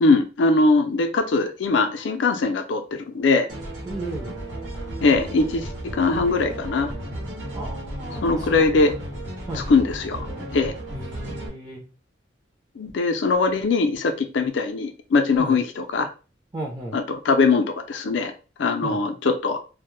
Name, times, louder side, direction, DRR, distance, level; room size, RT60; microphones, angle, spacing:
voice 1, 0.0-3.5 5.0-6.9 8.2-8.9 9.5-10.3 10.5-10.7 12.8-16.1 16.9-18.3 18.6-19.6, left 3 dB, 70° left, 6 dB, 0.4 m, -21 dB
sound 1, 3.5-11.5, right 1 dB, 80° right, 0.9 m, -34 dB
voice 2, 3.8-4.3 7.5-8.5 9.5-9.7 10.9-11.8 15.4-15.6 16.5-17.0 18.8-19.0, right 2 dB, 20° right, -3 dB, 0.4 m, -34 dB
2.1 x 2.0 x 3.0 m, 0.34 s
head